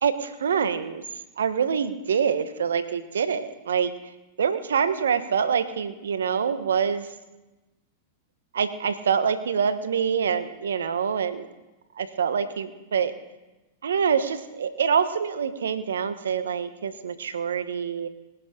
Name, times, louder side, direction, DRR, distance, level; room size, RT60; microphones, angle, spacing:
voice 1, 0.0-1.0 1.4-3.9 4.4-7.1 8.5-11.5 12.0-13.1 13.8-18.1, right 7 dB, 80° right, 11 dB, 1.3 m, -25 dB
21.0 x 10.5 x 5.2 m, 1.1 s
hypercardioid pair, 105°, 0 cm